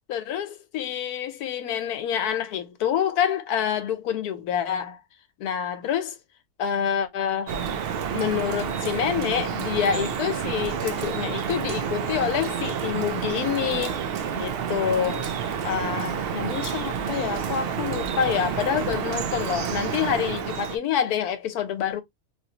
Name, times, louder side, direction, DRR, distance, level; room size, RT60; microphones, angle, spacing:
voice 1, 0.1-5.0 5.4-6.2 6.6-7.6 8.1-14.0 14.3-15.3 15.6-22.0, left 8 dB, 90° left, 1.2 m, -27 dB
Drip, 7.5-20.8, right 7 dB, 80° right, 0.5 m, -29 dB
3.0 x 2.6 x 2.7 m
omnidirectional pair, 1.6 m